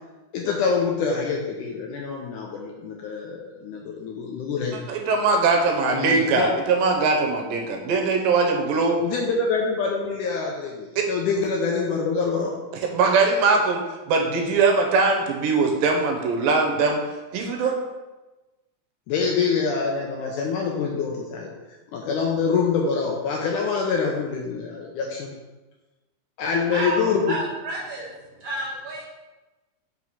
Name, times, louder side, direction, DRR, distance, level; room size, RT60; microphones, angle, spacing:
voice 1, 0.3-4.8 5.9-6.5 9.0-12.5 19.1-21.5 21.9-25.3 26.4-27.4, left 5 dB, 75° left, -1 dB, 1.9 m, -25 dB
voice 2, 4.9-9.0 11.0-11.1 12.8-17.0 17.3-17.7, right 4 dB, 75° right, 2 dB, 2.5 m, -21 dB
voice 3, 27.3-28.1 28.4-29.0, right 2 dB, 60° right, -5 dB, 1.8 m, -30 dB
5.8 x 4.7 x 5.4 m, 1.1 s
omnidirectional pair, 4.2 m